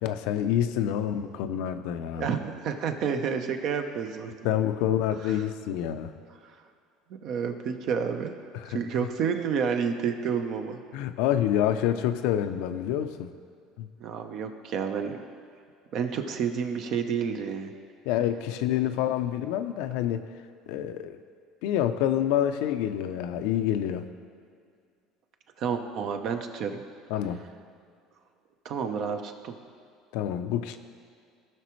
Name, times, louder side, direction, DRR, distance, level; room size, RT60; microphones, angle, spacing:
voice 1, 0.0-2.3 4.4-6.1 8.5-8.7 10.9-13.3 13.8-13.9 18.1-20.3 20.7-21.2 21.6-24.1 27.1-27.5 30.1-30.8, left 10 dB, 80° left, 9 dB, 0.5 m, -27 dB
voice 2, 2.1-4.3 5.3-5.4 7.2-8.4 8.7-10.8 14.0-15.2 15.9-17.7 25.6-26.8 28.6-29.5, right 6 dB, 60° right, 6 dB, 0.9 m, -30 dB
17.0 x 6.0 x 3.2 m, 2.2 s
supercardioid pair, 105°, 0 cm